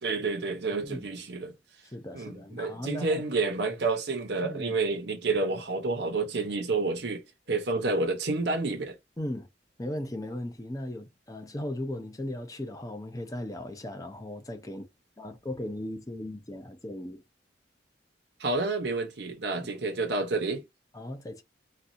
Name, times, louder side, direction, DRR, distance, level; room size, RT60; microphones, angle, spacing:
voice 1, 0.0-1.5 2.1-8.9 18.4-20.6, right 3 dB, 65° right, 0.8 m, -29 dB
voice 2, 1.9-3.2 4.4-4.8 9.2-9.5 9.8-14.9 15.2-17.2 19.6-19.7 20.9-21.4, left 1 dB, 20° left, 0.6 m, -37 dB
4.1 x 2.3 x 2.6 m
head